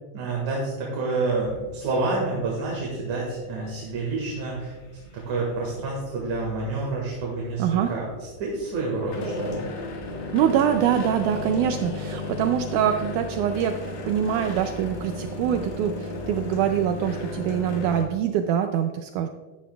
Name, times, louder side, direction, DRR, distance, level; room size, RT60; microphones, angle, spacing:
voice 1, 0.1-4.7 5.1-9.6, right 3 dB, 60° right, -3 dB, 2.9 m, -28 dB
sound 1, 1.3-18.1, left 2 dB, 80° left, 3.5 m, -36 dB
voice 2, 7.6-7.9 10.3-19.3, right 9 dB, 90° right, 6 dB, 1.7 m, -24 dB
13.0 x 11.0 x 2.3 m, 1.3 s
omnidirectional pair, 4.1 m